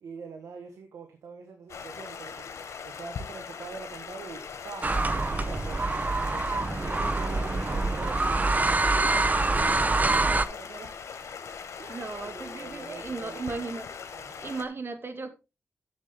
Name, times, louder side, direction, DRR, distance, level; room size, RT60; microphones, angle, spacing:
voice 1, 0.0-10.9 11.8-13.7 14.1-14.5, right 5 dB, 85° right, 5 dB, 1.4 m, -45 dB
Stream, 1.7-14.6, left 6 dB, 75° left, 1.5 m, -41 dB
sound 1, 4.8-10.5, right 3 dB, 30° right, 0.8 m, -25 dB
voice 2, 11.9-13.9 14.4-15.3, right 3 dB, 50° right, 7 dB, 2.2 m, -36 dB
10.5 x 7.3 x 3.6 m, 0.27 s
cardioid pair, 45°, 5 cm